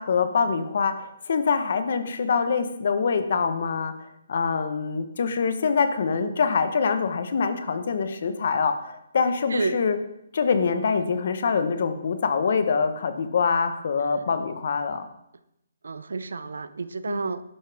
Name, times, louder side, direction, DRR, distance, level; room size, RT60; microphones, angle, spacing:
voice 1, 0.0-3.9 4.3-10.0 10.3-15.0 17.1-17.2, left 5 dB, 60° left, 9 dB, 1.3 m, -24 dB
voice 2, 15.8-17.4, right 4 dB, 85° right, 14 dB, 0.8 m, -31 dB
14.0 x 11.0 x 3.6 m, 0.81 s
hypercardioid pair, 160°, 0 cm